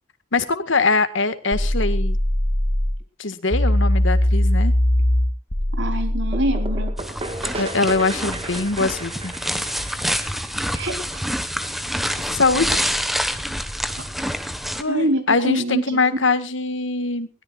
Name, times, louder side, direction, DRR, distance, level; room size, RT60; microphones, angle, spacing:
voice 1, 0.3-2.2 3.2-4.7 7.5-9.3 12.3-12.9 14.8-17.3, left 3 dB, 75° left, 10 dB, 1.7 m, -22 dB
sound 1, 1.5-3.0 3.5-7.0, left 1 dB, 40° left, 1.9 m, -20 dB
voice 2, 5.7-6.9 10.7-11.2 14.9-16.0, right 1 dB, 65° right, 5 dB, 4.1 m, -25 dB
sound 2, 6.3-11.9, right 2 dB, 30° right, 2.0 m, -35 dB
sound 3, 7.0-14.8, equal, ahead, 1.3 m, -27 dB
22.0 x 17.0 x 2.4 m, 0.32 s
head